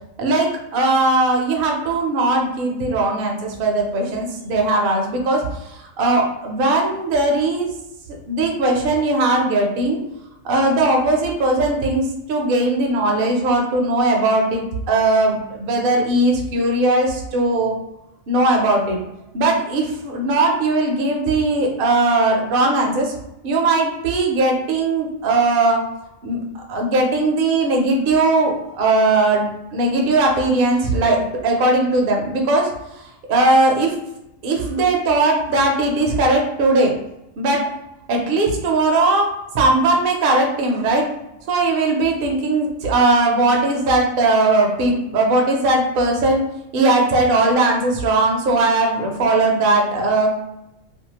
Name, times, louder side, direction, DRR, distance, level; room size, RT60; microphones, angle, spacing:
voice 1, 0.2-7.7 8.3-10.0 10.4-17.8 18.3-19.0 19.3-23.1 23.4-25.8 26.2-32.7 33.0-34.0 34.4-36.9 37.4-37.7 38.1-41.1 41.5-46.4 46.7-50.3, right 2 dB, 55° right, 1 dB, 0.6 m, -19 dB
2.6 x 2.2 x 2.8 m, 0.88 s
omnidirectional pair, 1.4 m